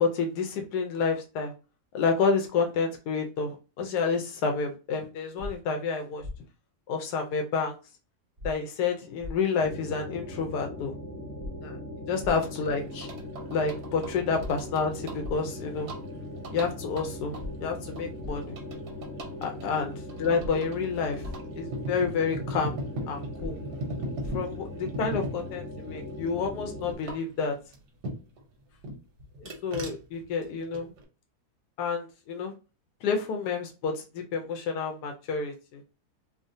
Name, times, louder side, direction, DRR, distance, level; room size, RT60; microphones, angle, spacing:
voice 1, 0.0-1.5 1.9-6.2 6.9-7.8 8.4-10.9 11.6-11.8 12.1-13.1 13.5-15.9 16.5-17.4 17.6-18.6 19.4-21.2 21.6-22.8 23.1-23.6 24.3-27.6 29.4-30.9 31.8-32.5 33.0-35.8, left 5 dB, 85° left, 3 dB, 1.2 m, -29 dB
sound 1, 5.4-5.5 6.2-6.3 8.4-8.5 9.2-9.3 11.4-11.5 12.2-12.3 14.4-14.5 15.2-15.3 17.4-17.5 18.2-18.3 20.4-20.5 21.2-21.3 23.4-23.5 24.2-24.3, left 1 dB, 40° right, 0.7 m, -36 dB
sound 2, 9.6-26.9, left 1 dB, 70° left, 1.5 m, -40 dB
sound 3, 12.1-28.4 28.8-31.0, right 1 dB, 85° right, 1.3 m, -40 dB
3.7 x 2.1 x 2.5 m, 0.32 s
omnidirectional pair, 1.7 m